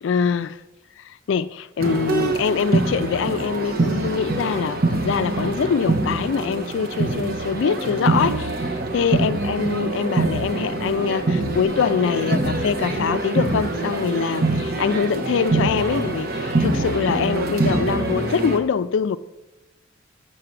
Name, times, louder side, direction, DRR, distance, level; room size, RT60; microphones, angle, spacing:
voice 1, 0.0-0.6 1.0-8.7 8.9-19.2, left 6 dB, 65° left, 0.3 m, -24 dB
sound 1, 1.8-18.6, right 2 dB, 50° right, 1.0 m, -24 dB
6.8 x 6.7 x 7.5 m
head